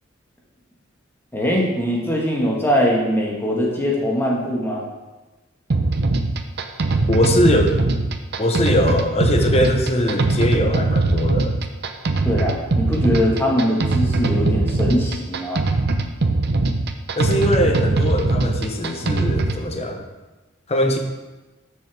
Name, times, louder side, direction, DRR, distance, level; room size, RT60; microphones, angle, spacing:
voice 1, 1.3-4.8 12.2-15.6, equal, 10° left, -3 dB, 1.5 m, -21 dB
sound 1, 5.7-19.6, right 2 dB, 55° right, 0.7 m, -21 dB
voice 2, 7.1-7.8 8.4-11.6 17.2-20.0 20.7-21.0, left 1 dB, 30° left, 4 dB, 1.0 m, -21 dB
13.0 x 6.4 x 3.4 m, 1.1 s
head